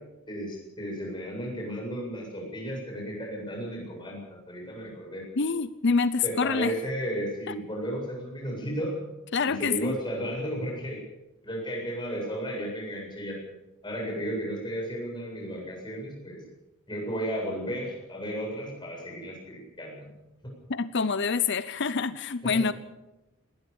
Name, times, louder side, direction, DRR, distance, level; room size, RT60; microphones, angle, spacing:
voice 1, 0.3-5.2 6.2-9.0 9.5-11.0 11.4-13.4 13.8-16.4 16.9-20.1 22.5-22.7, equal, 20° left, -1 dB, 7.9 m, -34 dB
voice 2, 5.4-6.8 9.3-10.0 20.7-22.7, left 4 dB, 55° left, 14 dB, 0.7 m, -26 dB
20.0 x 19.5 x 7.2 m, 0.98 s
head